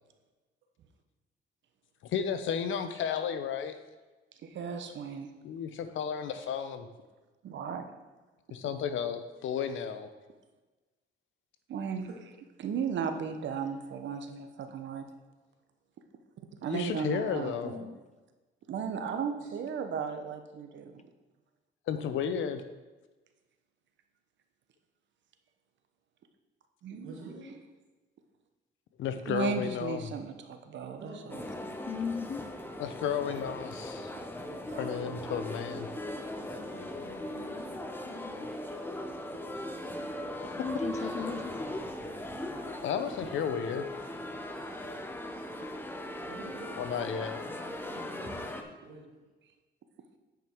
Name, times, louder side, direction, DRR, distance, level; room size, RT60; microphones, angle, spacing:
voice 1, 2.1-3.8 5.4-6.9 8.5-10.1 16.7-17.7 21.9-22.6 29.0-30.1 32.8-34.1 34.8-35.9 42.8-43.8 46.8-47.4, left 7 dB, 75° left, 9 dB, 0.8 m, -33 dB
voice 2, 4.4-5.3 7.4-7.9 11.7-12.1 12.6-15.1 16.6-18.0 18.7-21.0 26.8-27.2 29.3-31.1, right 6 dB, 65° right, 7 dB, 1.0 m, -35 dB
voice 3, 17.6-17.9 31.9-32.4 38.0-38.5 40.6-41.7, left 6 dB, 35° left, 11 dB, 0.6 m, -37 dB
voice 4, 27.0-27.5 31.0-31.6 31.9-32.0 34.7-35.1 36.3-37.8 38.0-38.9 39.6-39.8 46.3-47.4 47.9-49.1, right 2 dB, 85° right, -2 dB, 2.3 m, -49 dB
sound 1, 31.3-48.6, left 1 dB, 10° left, 0.9 m, -39 dB
9.2 x 5.2 x 4.5 m, 1.2 s
cardioid pair, 90°, 20 cm